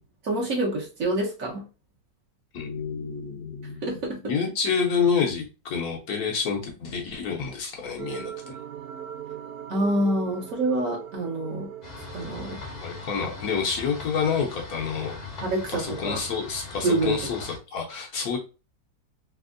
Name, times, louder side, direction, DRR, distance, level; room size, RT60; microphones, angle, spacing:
voice 1, 0.2-1.6 3.8-4.2 9.7-11.7 12.1-12.6 15.4-16.2 16.8-17.2, right 1 dB, 55° right, -1 dB, 1.2 m, -26 dB
voice 2, 2.5-3.9 4.2-8.5 12.8-15.2 15.7-18.4, left 6 dB, 65° left, 0 dB, 1.1 m, -28 dB
sound 1, 8.0-13.0, right 10 dB, 70° right, 1.0 m, -39 dB
sound 2, 11.8-17.6, left 3 dB, 35° left, 0.7 m, -40 dB
3.4 x 2.9 x 2.5 m, 0.32 s
omnidirectional pair, 1.9 m